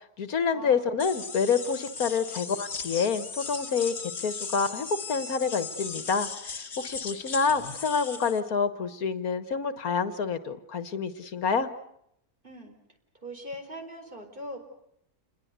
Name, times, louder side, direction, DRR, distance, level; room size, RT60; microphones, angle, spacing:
voice 1, 0.0-11.7, left 5 dB, 70° left, 12 dB, 1.8 m, -28 dB
voice 2, 0.5-1.1 12.4-12.7 13.2-14.6, equal, 35° right, 4 dB, 4.6 m, -41 dB
sound 1, 1.0-8.4, left 5 dB, 45° left, 1.8 m, -37 dB
29.0 x 21.5 x 8.1 m, 0.76 s
omnidirectional pair, 1.6 m